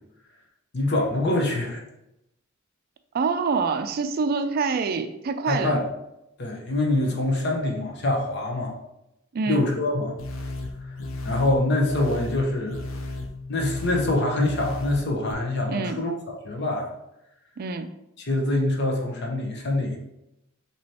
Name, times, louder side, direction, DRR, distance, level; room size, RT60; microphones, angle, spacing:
voice 1, 0.7-1.8 5.5-5.8 6.4-8.7 9.5-10.1 11.2-12.8 13.5-16.9 18.2-20.0, left 2 dB, 60° left, 0 dB, 0.9 m, -25 dB
voice 2, 3.1-5.8 9.3-9.6 15.7-16.0 17.6-17.9, right 4 dB, 45° right, 8 dB, 0.3 m, -26 dB
sound 1, 10.2-15.3, left 2 dB, 85° left, 0.6 m, -34 dB
6.2 x 3.0 x 2.9 m, 0.87 s
head